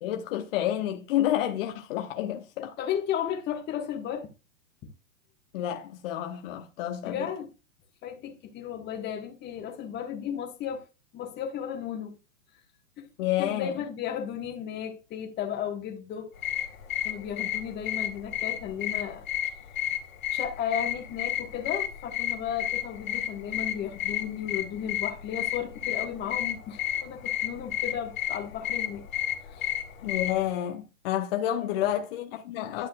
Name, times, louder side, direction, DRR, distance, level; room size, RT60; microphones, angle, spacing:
voice 1, 0.0-2.7 5.5-7.3 13.2-13.7 30.0-32.9, left 12 dB, 45° left, 1.0 m, -29 dB
voice 2, 2.8-4.3 4.8-4.9 7.0-7.5 8.0-10.8 11.1-12.1 13.0-13.1 13.4-16.3 17.0-19.2 20.3-29.0 29.5-29.7 31.6-31.9, left 9 dB, 25° left, 1.5 m, -34 dB
sound 1, 16.3-30.5, left 11 dB, 80° left, 2.3 m, -32 dB
11.0 x 7.1 x 2.4 m
hypercardioid pair, 115°, 39 cm